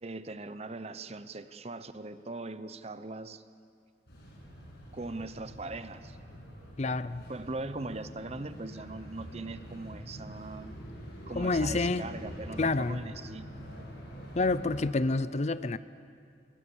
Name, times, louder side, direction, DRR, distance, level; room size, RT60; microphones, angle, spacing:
voice 1, 0.0-3.4 4.9-6.2 7.3-10.7 11.3-13.5, right 2 dB, 35° right, 12 dB, 0.8 m, -40 dB
sound 1, 4.1-14.9, equal, 65° left, 7.0 m, -45 dB
voice 2, 6.8-7.2 11.4-12.0 12.6-13.0 14.3-15.8, left 3 dB, 40° left, 15 dB, 0.5 m, -28 dB
27.0 x 21.0 x 7.1 m, 2.3 s
head